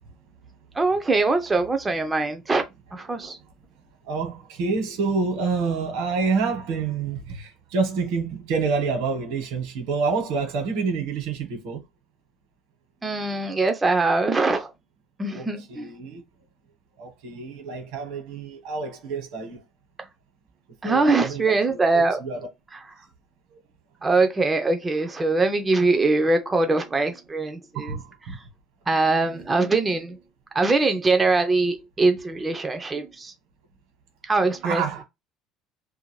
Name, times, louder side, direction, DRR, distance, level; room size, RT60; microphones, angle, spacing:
voice 1, 0.7-2.6 2.9-3.4 13.0-14.7 15.2-15.9 20.8-22.2 24.0-28.0 28.9-30.2 30.5-33.3 34.3-34.8, right 3 dB, 10° right, 0.4 m, -22 dB
voice 2, 4.0-11.8 15.3-16.2 17.0-19.6 20.8-22.5 27.7-28.4 34.6-35.0, right 4 dB, 80° right, 1.1 m, -28 dB
2.5 x 2.5 x 3.0 m
cardioid pair, 170°, 0 cm